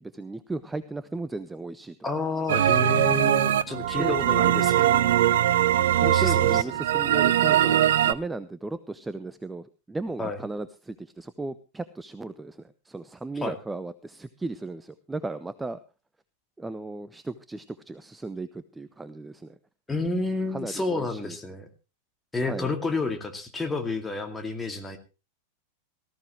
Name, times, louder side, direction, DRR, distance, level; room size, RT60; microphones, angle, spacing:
voice 1, 0.0-2.0 4.0-4.2 5.9-15.8 16.6-19.5 20.5-21.4 22.4-22.7, right 3 dB, 10° right, 15 dB, 0.7 m, -36 dB
voice 2, 2.0-5.0 6.0-6.6 10.2-10.4 13.4-13.5 19.9-21.7 22.3-25.0, left 3 dB, 10° left, 5 dB, 2.3 m, -30 dB
sound 1, 2.5-8.1, right 11 dB, 60° right, 0.6 m, -21 dB
18.5 x 14.5 x 3.1 m, 0.31 s
figure-of-eight pair, 90°, 0 cm